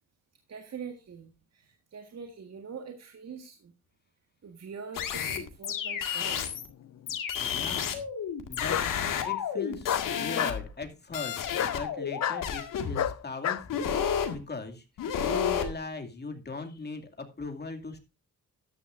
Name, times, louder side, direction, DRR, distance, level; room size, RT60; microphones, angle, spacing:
voice 1, 0.5-3.7 4.4-6.6, right 6 dB, 55° right, 5 dB, 1.7 m, -44 dB
sound 1, 4.9-6.7 7.1-10.8 11.1-13.1 13.7-14.4 15.0-15.7, left 8 dB, 85° left, 2.0 m, -31 dB
Bark, 6.5-7.2 8.7-8.9 9.9-10.6 11.5-11.8 12.2-12.4 12.9-13.7, left 10 dB, 55° left, 0.7 m, -30 dB
voice 2, 7.4-8.0 8.5-8.8 9.2-9.9 10.2-13.9 14.3-14.8 15.2-18.0, left 3 dB, 30° left, 4 dB, 2.5 m, -39 dB
13.0 x 11.0 x 2.6 m, 0.27 s
cardioid pair, 90°, 32 cm